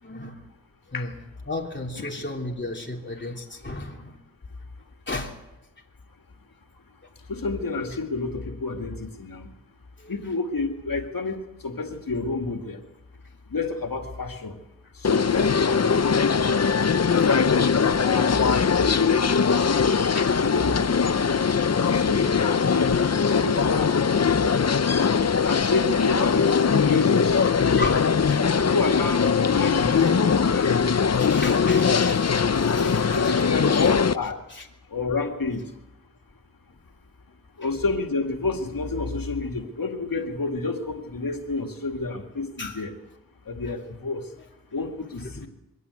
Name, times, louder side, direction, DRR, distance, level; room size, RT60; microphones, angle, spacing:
voice 1, 0.0-0.4 0.9-1.2 1.5-4.2 5.1-5.4 10.0-10.1 16.4-16.5 16.8-17.3 20.1-20.4 21.8-22.1 27.8-28.4 29.9-30.0 31.1-33.9 34.5-34.7 42.6-42.8 45.4-45.5, left 2 dB, 35° left, 0 dB, 3.2 m, -35 dB
voice 2, 7.3-9.5 10.1-11.4 11.6-12.8 13.5-14.5 15.0-16.7 17.2-20.1 20.4-21.1 21.9-23.0 23.3-24.0 24.3-27.5 28.4-31.5 31.9-32.1 32.5-34.4 34.9-35.7 37.6-42.9 43.5-44.3 44.7-45.5, left 3 dB, 85° left, 4 dB, 2.1 m, -29 dB
sound 1, 15.0-34.1, left 6 dB, 50° left, 0.7 m, -21 dB
23.0 x 17.0 x 8.4 m, 0.91 s
wide cardioid pair, 60°, 33 cm